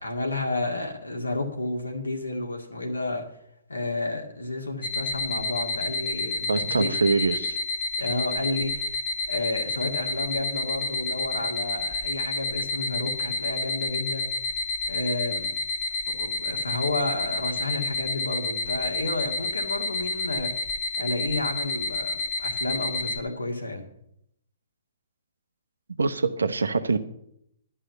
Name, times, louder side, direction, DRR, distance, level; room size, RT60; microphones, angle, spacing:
voice 1, 0.0-3.2 3.7-6.9 8.0-8.9 9.3-14.3 14.9-15.5 16.2-20.7 21.0-23.9, left 2 dB, 85° left, 2.0 m, -31 dB
sound 1, 4.8-23.2, left 3 dB, 5° left, 1.6 m, -30 dB
voice 2, 6.5-7.6 26.0-27.0, right 4 dB, 75° right, 0.9 m, -24 dB
11.5 x 5.5 x 8.3 m
figure-of-eight pair, 125°, 0 cm